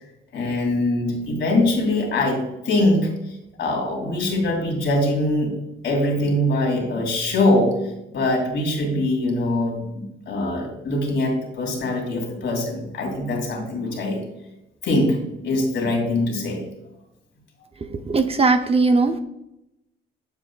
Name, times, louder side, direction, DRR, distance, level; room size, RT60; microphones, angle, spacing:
voice 1, 0.3-3.1 3.6-5.5 5.8-7.7 8.1-14.2 14.8-15.2 15.4-16.6, left 1 dB, 65° left, 0 dB, 2.7 m, -22 dB
voice 2, 17.9-19.2, right 3 dB, 30° right, 7 dB, 0.6 m, -19 dB
8.1 x 7.6 x 2.3 m, 0.88 s
cardioid pair, 90°, 20 cm